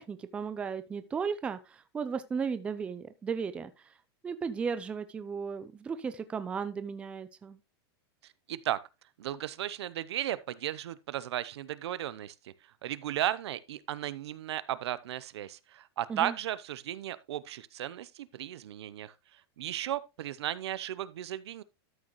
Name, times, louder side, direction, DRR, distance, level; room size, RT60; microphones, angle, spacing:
voice 1, 0.0-3.7 4.2-7.6 16.1-16.3, right 6 dB, 10° right, 0.5 m, -35 dB
voice 2, 8.5-8.8 9.2-12.5 12.8-21.6, right 12 dB, 85° right, 0.8 m, -35 dB
12.5 x 6.5 x 3.1 m
supercardioid pair, 175°, 14 cm